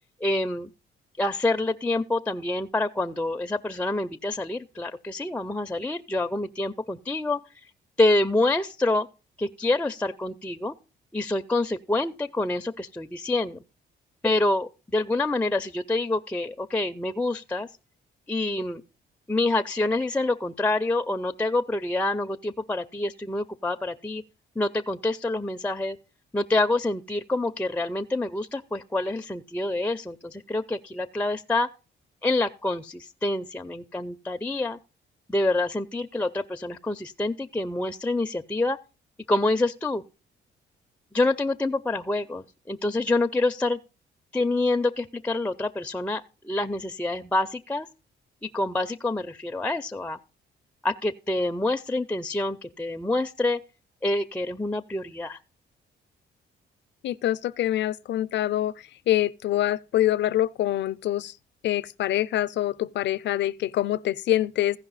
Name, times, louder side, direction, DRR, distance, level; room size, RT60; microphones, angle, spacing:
voice 1, 0.2-0.7 1.2-7.4 8.0-9.1 9.4-10.8 11.1-13.6 14.2-17.7 18.3-18.8 19.3-24.2 24.6-26.0 26.3-31.7 32.2-34.8 35.3-38.8 39.3-40.0 41.1-43.8 44.3-47.9 48.5-50.2 50.8-53.6 54.0-55.4, left 2 dB, 5° left, 0.4 m, -27 dB
voice 2, 57.0-58.7 59.1-61.3 61.6-64.8, left 13 dB, 65° left, 0.5 m, -25 dB
15.5 x 5.3 x 4.0 m
cardioid pair, 90°, 20 cm